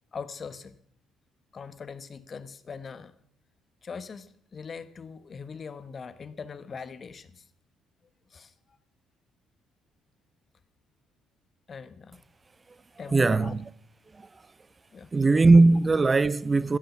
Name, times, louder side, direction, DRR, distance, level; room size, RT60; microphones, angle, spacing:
voice 1, 0.1-0.8 1.5-3.1 3.8-7.4 8.3-8.5 11.7-12.2 13.0-13.5 14.9-15.1, left 5 dB, 40° left, 1.2 m, -41 dB
voice 2, 13.1-13.6 14.2-14.3 15.1-16.8, right 3 dB, 30° right, 0.5 m, -19 dB
15.5 x 11.0 x 5.8 m
hypercardioid pair, 50°, 0 cm